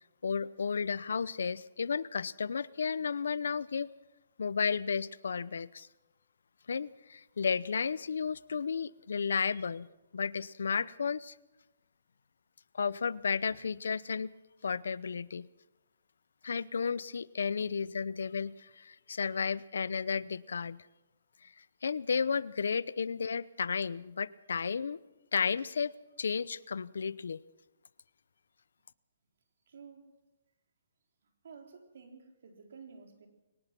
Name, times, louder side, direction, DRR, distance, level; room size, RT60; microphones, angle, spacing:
voice 1, 0.2-3.9 4.4-5.9 6.7-9.9 10.1-11.3 12.7-14.3 14.6-15.5 16.4-20.8 21.4-21.5 21.8-25.0 25.3-27.4, left 6 dB, 80° left, 19 dB, 0.7 m, -33 dB
voice 2, 29.7-30.1 31.4-33.3, right 5 dB, 65° right, 4 dB, 3.9 m, -52 dB
22.5 x 19.0 x 6.1 m, 1.0 s
hypercardioid pair, 160°, 0 cm